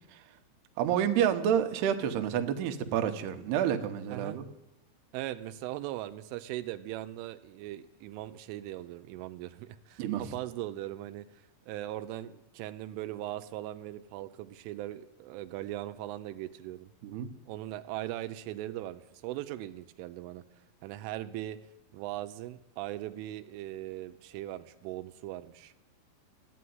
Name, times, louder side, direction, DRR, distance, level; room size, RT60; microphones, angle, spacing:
voice 1, 0.8-4.5 10.0-10.3 17.0-17.3, right 9 dB, 70° right, 6 dB, 2.8 m, -29 dB
voice 2, 5.1-16.9 17.5-20.4 20.8-21.6 21.9-25.7, right 14 dB, 90° right, 10 dB, 3.2 m, -39 dB
15.0 x 9.8 x 9.4 m, 0.89 s
omnidirectional pair, 5.5 m